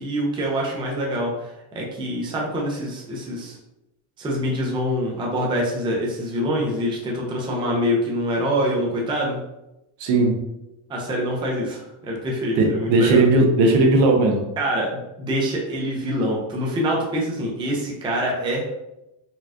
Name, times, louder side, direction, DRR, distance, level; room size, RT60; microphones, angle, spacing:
voice 1, 0.0-3.6 4.2-9.4 10.9-13.3 14.6-18.7, equal, 10° right, -3 dB, 0.4 m, -25 dB
voice 2, 10.0-10.4 12.6-14.4, right 2 dB, 70° right, 2 dB, 0.8 m, -17 dB
4.1 x 2.3 x 2.3 m, 0.92 s
cardioid pair, 145°, 49 cm